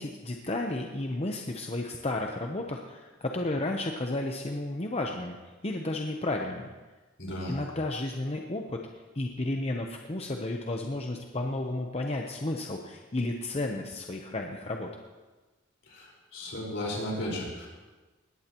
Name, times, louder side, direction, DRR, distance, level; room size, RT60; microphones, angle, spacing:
voice 1, 0.0-5.4 5.6-6.7 7.5-8.8 9.1-14.9, left 2 dB, 35° left, 2 dB, 0.8 m, -32 dB
voice 2, 7.2-7.6 15.9-17.7, left 1 dB, 70° left, -2 dB, 4.7 m, -35 dB
19.5 x 15.0 x 3.0 m, 1.3 s
head